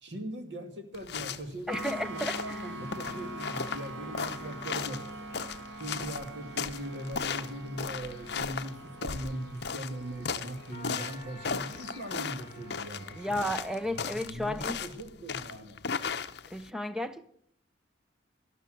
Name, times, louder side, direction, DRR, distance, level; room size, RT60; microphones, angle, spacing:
voice 1, 0.0-5.2 5.8-15.8, right 1 dB, 65° right, 6 dB, 2.3 m, -40 dB
sound 1, 0.9-16.7, left 6 dB, 60° left, 0.7 m, -37 dB
voice 2, 1.7-2.6 13.2-14.8 16.5-17.3, left 1 dB, 5° right, 11 dB, 0.6 m, -33 dB
sound 2, 1.7-14.2, right 2 dB, 85° right, 1.8 m, -44 dB
sound 3, 3.9-7.4 10.7-13.6, left 1 dB, 35° left, 3.9 m, -52 dB
12.5 x 12.5 x 7.7 m, 0.68 s
head